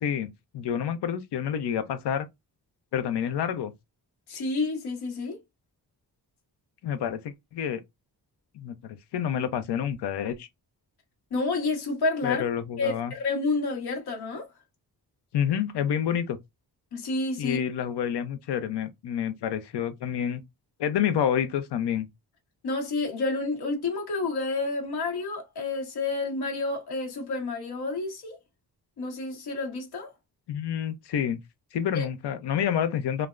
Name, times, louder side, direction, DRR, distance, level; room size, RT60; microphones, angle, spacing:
voice 1, 0.0-2.3 2.9-3.7 6.8-7.8 8.5-10.5 12.2-13.1 15.3-16.4 17.4-20.4 20.8-22.1 30.5-31.4 31.7-33.3, left 9 dB, 90° left, 0.6 m, -28 dB
voice 2, 4.3-5.4 11.3-12.4 12.8-14.5 16.9-17.6 22.6-28.4 29.0-30.1 31.9-32.0, left 3 dB, 70° left, 1.0 m, -29 dB
3.3 x 2.0 x 2.3 m
wide cardioid pair, 140°, 39 cm